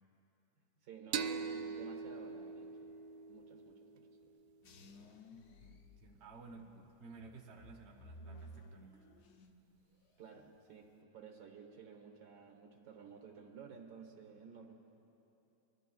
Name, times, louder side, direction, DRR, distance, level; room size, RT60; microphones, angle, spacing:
voice 1, 0.8-2.9 3.3-4.3 6.8-6.9 10.2-14.7, right 6 dB, 65° right, 3 dB, 1.7 m, -55 dB
sound 1, 1.1-4.5, right 6 dB, 85° right, 1.2 m, -42 dB
sound 2, 4.6-6.7 7.1-9.7 10.0-10.6, equal, 85° left, 0.6 m, -56 dB
voice 2, 5.3-9.0, right 3 dB, 45° right, -1 dB, 1.1 m, -55 dB
23.5 x 13.0 x 2.3 m, 2.9 s
omnidirectional pair, 1.8 m